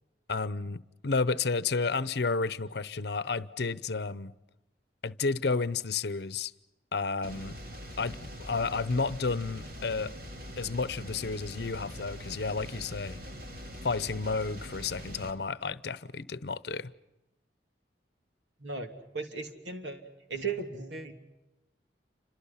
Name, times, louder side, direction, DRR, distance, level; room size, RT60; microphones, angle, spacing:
voice 1, 0.3-4.3 5.0-6.5 6.9-7.6 8.0-10.1 10.6-13.2 13.8-16.9, left 4 dB, 65° left, 0.8 m, -31 dB
sound 1, 7.2-15.3, equal, 55° right, 3.4 m, -43 dB
voice 2, 18.6-20.0 20.3-21.1, right 4 dB, 75° right, 3.1 m, -36 dB
29.0 x 26.0 x 5.7 m
head